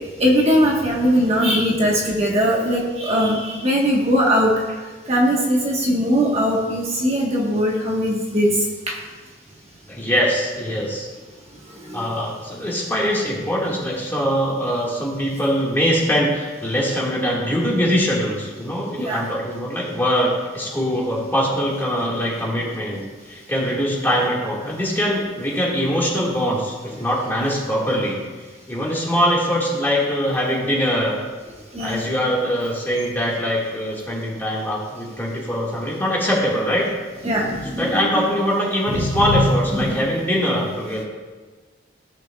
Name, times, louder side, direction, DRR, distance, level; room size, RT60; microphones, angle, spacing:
voice 1, 0.2-4.5 5.1-8.5 11.9-12.0 19.1-19.2 27.4-27.5 31.7-32.0 37.2-38.3 38.9-39.4 39.7-40.0, equal, 35° right, -3 dB, 1.1 m, -20 dB
voice 2, 9.9-11.1 11.9-28.2 28.7-31.2 31.8-36.9 37.8-41.0, equal, 10° left, -4 dB, 1.6 m, -22 dB
15.0 x 6.1 x 2.2 m, 1.4 s
head